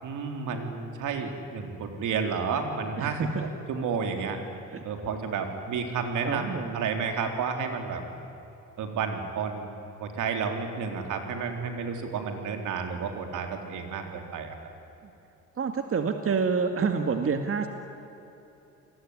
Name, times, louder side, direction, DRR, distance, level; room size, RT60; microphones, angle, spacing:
voice 1, 0.0-3.2 3.7-4.4 4.8-8.0 8.8-9.7 10.0-14.6, right 5 dB, 80° right, 4 dB, 4.0 m, -31 dB
voice 2, 3.0-3.5 4.7-4.9 6.2-6.9 15.0-15.1 15.6-17.7, right 5 dB, 45° right, 6 dB, 2.1 m, -28 dB
29.5 x 21.0 x 9.8 m, 3.0 s
cardioid pair, 90°, 30 cm